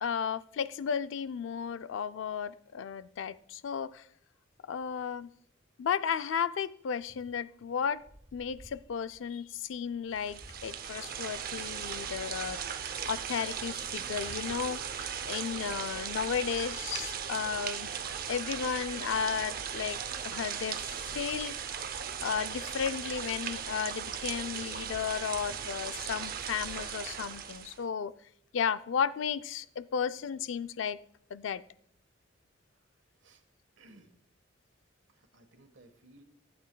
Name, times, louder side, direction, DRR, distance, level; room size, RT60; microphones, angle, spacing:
voice 1, 0.0-4.1 4.6-5.3 5.8-8.0 8.3-17.9 18.3-21.8 22.2-28.1 28.5-31.0 31.3-31.6, left 7 dB, 75° left, 14 dB, 0.4 m, -34 dB
Wind, 7.0-16.9, equal, 15° right, 0.8 m, -58 dB
sound 1, 10.2-27.8, right 7 dB, 50° right, 0.6 m, -38 dB
voice 2, 33.8-34.1 35.1-36.2, right 2 dB, 70° right, 6 dB, 1.4 m, -58 dB
15.5 x 8.7 x 2.2 m, 0.66 s
head